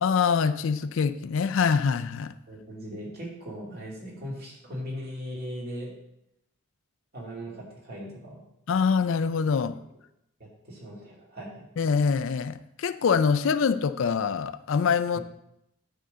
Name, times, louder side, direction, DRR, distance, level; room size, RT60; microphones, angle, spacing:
voice 1, 0.0-2.3 8.7-9.8 11.8-15.2, left 6 dB, 65° left, 12 dB, 0.4 m, -24 dB
voice 2, 2.5-5.9 7.1-8.4 10.4-11.7 15.1-15.2, equal, 45° right, -4 dB, 2.5 m, -39 dB
9.4 x 3.7 x 6.6 m, 0.81 s
head